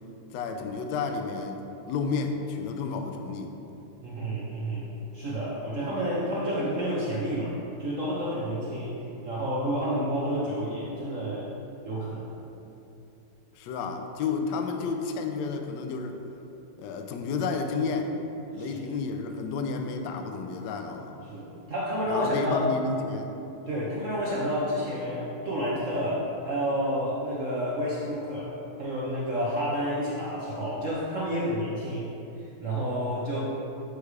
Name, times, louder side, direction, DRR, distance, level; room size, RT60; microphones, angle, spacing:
voice 1, 0.3-3.6 13.6-16.2 16.8-18.1 18.5-21.1 22.1-23.3, left 4 dB, 75° left, 5 dB, 1.1 m, -31 dB
voice 2, 4.0-4.9 5.1-9.0 9.2-11.5 11.8-12.3 18.6-18.9 21.3-22.7 23.7-32.1 32.4-33.4, equal, 55° right, -7 dB, 0.9 m, -30 dB
8.2 x 3.3 x 4.7 m, 2.9 s
omnidirectional pair, 2.2 m